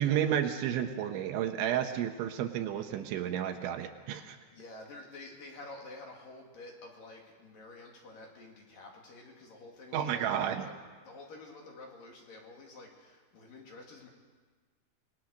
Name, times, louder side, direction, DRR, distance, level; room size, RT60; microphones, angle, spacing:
voice 1, 0.0-4.4 9.9-10.7, right 10 dB, 75° right, 6 dB, 3.2 m, -31 dB
voice 2, 4.5-10.8 11.0-14.1, left 2 dB, 50° left, 0 dB, 3.6 m, -49 dB
26.0 x 21.0 x 6.5 m, 1.5 s
omnidirectional pair, 5.8 m